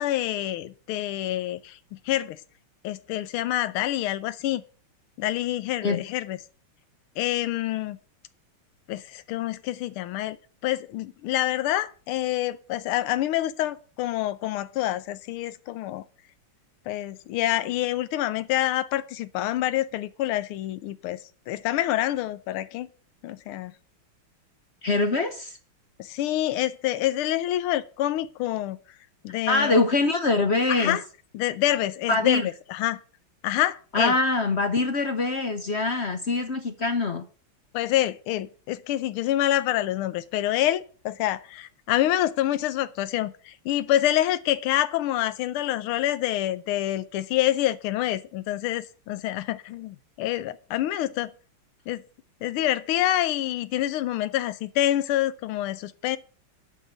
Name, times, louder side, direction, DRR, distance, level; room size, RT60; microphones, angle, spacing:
voice 1, 0.0-1.8 2.1-2.4 2.8-4.6 5.2-6.4 7.2-8.0 8.9-10.4 10.6-16.0 16.9-21.2 21.5-22.9 23.2-23.7 26.0-28.8 29.2-29.8 30.7-31.0 31.3-32.4 32.7-33.0 33.4-34.1 37.7-51.3 51.9-52.0 52.4-56.2, left 13 dB, 85° left, 1.6 m, -27 dB
voice 2, 24.8-25.6 29.5-31.0 32.1-32.5 33.9-37.2, left 3 dB, 55° left, 0.7 m, -24 dB
9.2 x 5.7 x 7.9 m
omnidirectional pair, 2.3 m